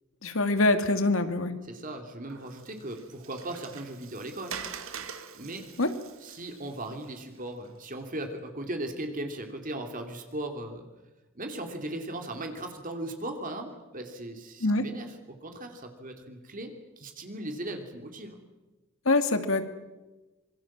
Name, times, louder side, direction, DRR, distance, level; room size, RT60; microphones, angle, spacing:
voice 1, 0.2-1.5 5.8-5.9 14.6-14.9 19.1-19.6, left 2 dB, 65° left, 9 dB, 2.4 m, -24 dB
voice 2, 1.7-4.6 5.3-5.7 6.2-10.8 11.3-18.4, right 1 dB, 40° right, 5 dB, 2.9 m, -38 dB
Water, 2.3-7.7, right 7 dB, 65° right, 2.3 m, -44 dB
26.0 x 24.0 x 7.4 m, 1.1 s
head